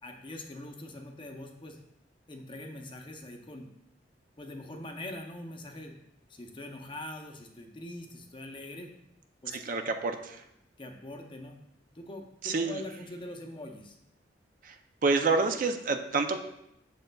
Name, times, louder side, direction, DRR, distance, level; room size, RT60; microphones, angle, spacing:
voice 1, 0.0-1.8 2.3-3.7 4.4-5.9 6.3-8.9 9.4-9.6 10.8-11.6 11.9-14.0, left 1 dB, 25° left, 3 dB, 0.6 m, -43 dB
voice 2, 9.5-10.4 12.4-12.8 14.6-14.8 15.0-16.4, right 3 dB, 45° right, 7 dB, 0.4 m, -28 dB
6.5 x 6.5 x 2.2 m, 0.81 s
head